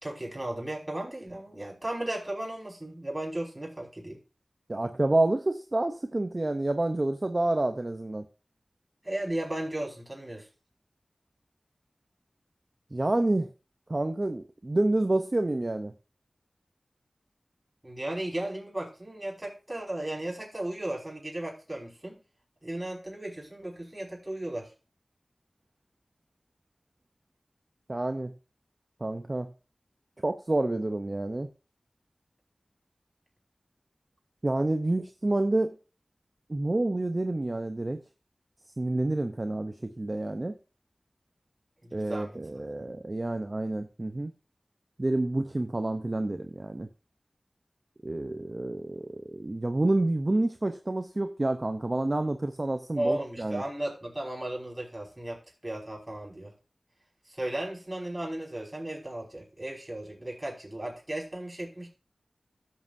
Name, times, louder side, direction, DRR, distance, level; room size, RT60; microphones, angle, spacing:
voice 1, 0.0-4.2 9.0-10.4 17.8-22.2 22.6-24.7 41.8-42.4 52.9-56.5 57.3-61.9, right 1 dB, 20° right, -2 dB, 5.1 m, -35 dB
voice 2, 4.7-8.2 12.9-13.5 13.9-15.9 27.9-28.3 29.0-29.5 30.2-31.5 34.4-35.8 36.5-38.0 38.8-40.6 41.9-44.3 45.0-46.9 48.0-53.6, right 2 dB, 40° right, 7 dB, 0.7 m, -28 dB
16.0 x 7.6 x 2.6 m, 0.33 s
wide cardioid pair, 50°, 0 cm